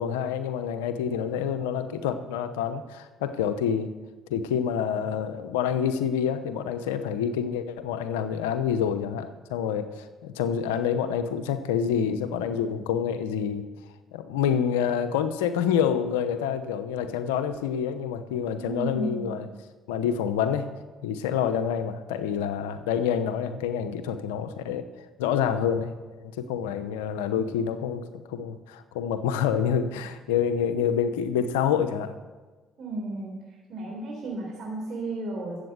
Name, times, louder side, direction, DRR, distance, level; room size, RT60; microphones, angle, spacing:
voice 1, 0.0-3.9 4.3-13.7 14.1-19.5 19.9-20.7 21.0-24.9 25.2-32.1, left 8 dB, 90° left, 10 dB, 0.8 m, -27 dB
voice 2, 18.6-19.4 32.8-33.4 33.7-35.6, right 2 dB, 60° right, -2 dB, 4.0 m, -33 dB
13.0 x 8.1 x 8.0 m, 1.3 s
hypercardioid pair, 60°, 0 cm